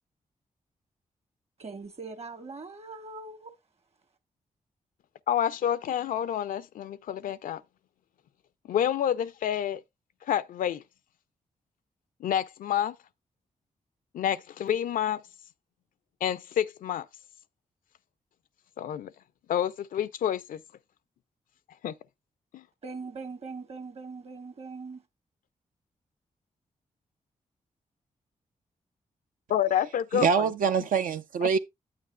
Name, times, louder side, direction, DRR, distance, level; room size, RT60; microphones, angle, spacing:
voice 1, 1.6-3.5 22.8-25.0, right 4 dB, 50° right, 1.3 m, -41 dB
voice 2, 5.3-7.6 8.7-9.8 10.2-10.8 12.2-13.0 14.1-15.2 16.2-17.1 18.8-19.1 19.5-20.6 21.8-21.9 22.5-22.6 29.5-30.5 31.4-31.5, left 10 dB, 80° left, 0.4 m, -28 dB
voice 3, 30.1-31.6, right 6 dB, 80° right, 0.5 m, -24 dB
9.6 x 8.4 x 2.2 m
cardioid pair, 60°, 14 cm